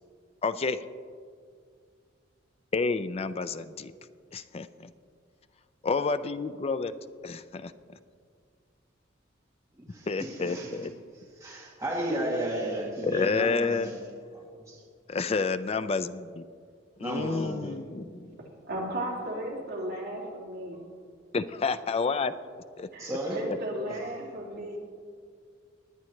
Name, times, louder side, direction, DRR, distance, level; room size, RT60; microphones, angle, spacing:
voice 1, 0.4-0.9 2.7-3.9 4.3-4.9 5.8-6.9 7.2-8.0 9.9-10.9 13.0-13.9 15.1-16.5 17.0-18.3 21.3-22.3 22.8-22.9 23.5-23.6, left 4 dB, 30° left, 12 dB, 0.4 m, -29 dB
voice 2, 9.8-10.7 11.4-14.0 14.3-14.8 17.0-17.7 23.0-23.4, right 1 dB, 15° right, -4 dB, 1.5 m, -33 dB
voice 3, 18.4-20.9 22.9-24.8, right 1 dB, 55° right, -3 dB, 2.6 m, -35 dB
19.0 x 9.7 x 3.2 m, 2.1 s
head